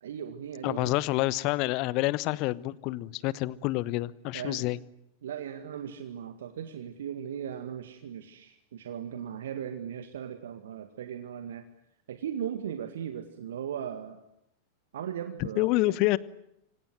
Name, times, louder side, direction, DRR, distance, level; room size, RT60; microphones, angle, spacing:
voice 1, 0.0-0.9 4.3-4.7 5.2-11.7 12.1-14.2 14.9-15.7, right 9 dB, 60° right, 2.0 m, -38 dB
voice 2, 0.6-4.8 15.6-16.2, left 19 dB, 40° left, 1.0 m, -28 dB
29.0 x 25.0 x 7.9 m
figure-of-eight pair, 90°, 0 cm